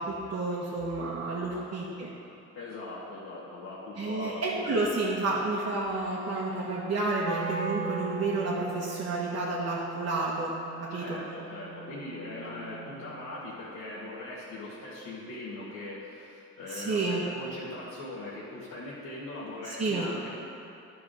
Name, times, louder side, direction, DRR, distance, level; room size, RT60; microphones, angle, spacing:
voice 1, 0.0-2.1 4.0-10.5 10.8-11.0 16.7-17.2 19.6-20.1, right 2 dB, 50° right, -7 dB, 1.6 m, -30 dB
voice 2, 2.6-4.8 10.9-20.3, left 2 dB, 65° left, -8 dB, 1.9 m, -40 dB
Wind instrument woodwind instrument, 7.2-13.3, right 5 dB, 80° right, 2.0 m, -39 dB
12.0 x 4.8 x 5.1 m, 2.7 s
cardioid pair, 90°, 30 cm